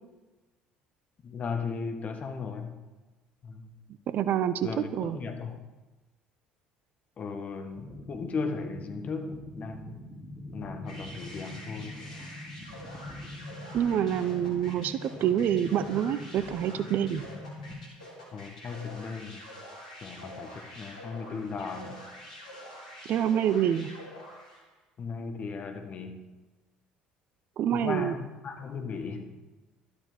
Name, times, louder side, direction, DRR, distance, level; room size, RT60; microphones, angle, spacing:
voice 1, 1.2-2.7 3.4-3.7 4.6-5.6 7.2-10.0 10.5-11.9 18.3-19.4 20.0-22.0 25.0-26.2 27.7-29.3, left 4 dB, 40° left, 6 dB, 1.8 m, -36 dB
voice 2, 4.1-5.2 13.7-17.2 23.1-23.9 27.6-28.2, right 10 dB, 50° right, 13 dB, 0.7 m, -27 dB
sound 1, 7.7-17.7, left 1 dB, 15° right, 4.9 m, -44 dB
sound 2, 10.9-24.7, left 1 dB, 80° left, 3.3 m, -46 dB
12.5 x 12.0 x 5.1 m, 1.2 s
figure-of-eight pair, 60°, 4 cm